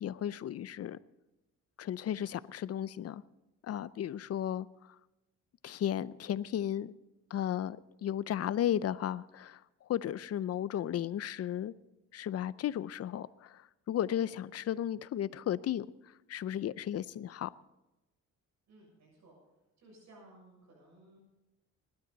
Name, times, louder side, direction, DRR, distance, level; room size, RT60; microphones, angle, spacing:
voice 1, 0.0-1.0 1.8-3.2 3.6-4.7 5.6-7.0 7.3-9.6 9.9-11.7 12.1-15.9 16.3-17.5, left 10 dB, 55° left, 0.6 m, -34 dB
voice 2, 18.7-19.3 19.8-21.2, right 1 dB, 65° right, 7.0 m, -58 dB
20.0 x 12.5 x 4.0 m
cardioid pair, 90°, 30 cm